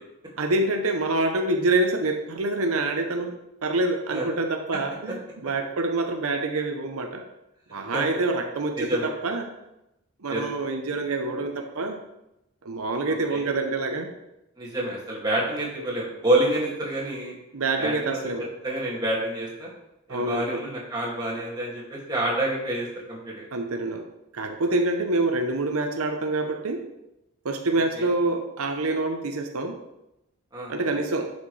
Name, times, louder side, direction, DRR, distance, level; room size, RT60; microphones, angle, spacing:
voice 1, 0.4-3.3 3.6-7.3 7.7-9.5 10.2-12.0 12.6-14.1 17.5-18.5 20.1-20.6 23.5-24.1 24.3-26.8 27.4-29.8 30.7-31.3, right 2 dB, 85° right, 5 dB, 0.8 m, -26 dB
voice 2, 8.8-9.1 10.3-10.4 13.1-13.4 14.6-17.3 17.8-18.3 18.6-19.7 20.1-23.5 27.9-28.1 30.5-30.8, right 1 dB, 20° right, -5 dB, 2.3 m, -28 dB
11.0 x 6.4 x 3.3 m, 0.89 s
head